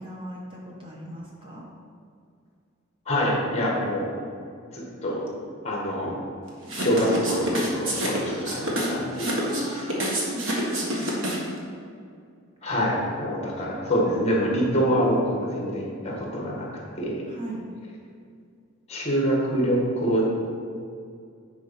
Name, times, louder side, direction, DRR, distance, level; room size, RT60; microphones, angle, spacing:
voice 1, 0.0-1.6 9.5-10.9 17.3-17.6, right 1 dB, 25° right, -3 dB, 1.0 m, -38 dB
voice 2, 3.0-4.1 4.7-5.3 5.6-6.2 6.8-9.3 11.1-11.2 12.6-16.7 16.9-17.2 18.9-20.2, equal, 30° left, -3 dB, 1.6 m, -25 dB
sound 1, 6.7-11.6, right 1 dB, 70° right, 1.6 m, -28 dB
10.5 x 4.7 x 4.3 m, 2.3 s
head